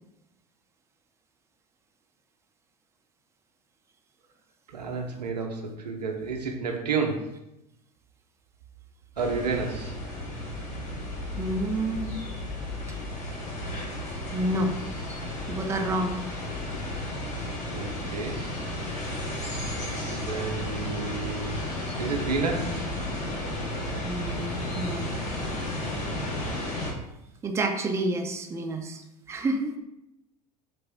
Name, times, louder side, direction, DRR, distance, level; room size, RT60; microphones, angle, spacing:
voice 1, 4.7-7.3 9.2-9.9 17.7-18.4 20.0-21.6 22.0-22.9, right 4 dB, 85° right, 2 dB, 0.6 m, -31 dB
sound 1, 9.2-26.9, left 1 dB, 35° left, 1.3 m, -33 dB
voice 2, 11.4-12.1 14.3-14.8 15.5-16.2 24.0-25.1 27.4-29.8, right 1 dB, 15° right, 4 dB, 0.4 m, -29 dB
3.3 x 2.5 x 3.4 m, 0.87 s
hypercardioid pair, 80°, 20 cm